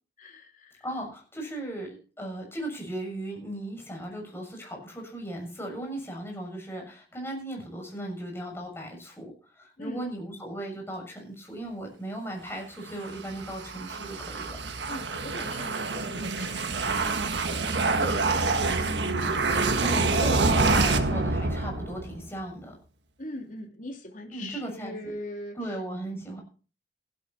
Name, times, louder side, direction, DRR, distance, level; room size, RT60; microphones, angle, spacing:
voice 1, 0.2-0.8 9.8-10.0 14.9-18.8 23.2-25.6, left 1 dB, 45° left, 3 dB, 3.1 m, -41 dB
voice 2, 0.8-14.6 18.7-19.3 19.8-22.7 24.3-25.0 25.6-26.4, right 1 dB, 15° left, 1 dB, 6.8 m, -37 dB
sound 1, 12.9-22.3, right 3 dB, 70° right, 1.6 m, -27 dB
16.0 x 12.0 x 4.3 m, 0.37 s
head